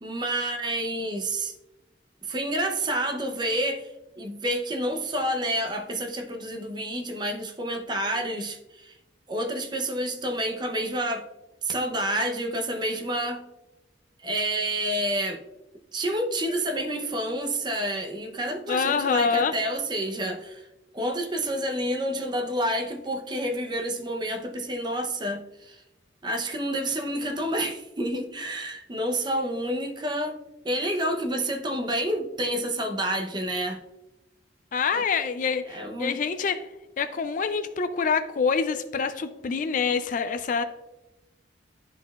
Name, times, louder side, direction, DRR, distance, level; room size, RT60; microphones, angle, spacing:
voice 1, 0.0-1.5 2.2-3.9 4.2-8.9 9.3-11.3 11.6-13.4 14.2-15.4 15.9-20.7 20.9-25.8 26.2-30.4 30.6-33.8 34.9-35.0 35.7-36.2, right 1 dB, 25° right, 4 dB, 0.6 m, -29 dB
voice 2, 18.7-19.6 34.7-36.6 37.0-40.6, left 5 dB, 45° left, 10 dB, 0.3 m, -26 dB
11.5 x 4.1 x 2.3 m, 0.99 s
head